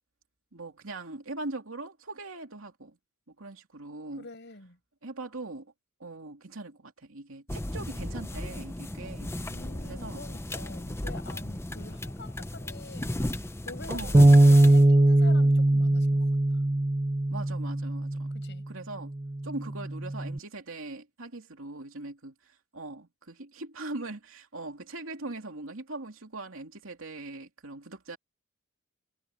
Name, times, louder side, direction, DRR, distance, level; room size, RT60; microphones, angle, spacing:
voice 1, 0.5-3.0 3.4-4.3 5.0-5.7 6.0-9.3 9.8-10.3 13.9-14.5 17.3-18.3 18.7-19.1 19.4-28.2, right 2 dB, 75° right, 2.9 m, -41 dB
voice 2, 4.2-4.8 9.5-13.2 13.7-16.3 18.3-18.6, left 3 dB, 55° left, 6.4 m, -46 dB
sound 1, 7.5-14.8, left 1 dB, 10° left, 0.8 m, -35 dB
Bass guitar, 14.1-18.6 19.2-20.4, right 1 dB, 20° right, 0.7 m, -21 dB
head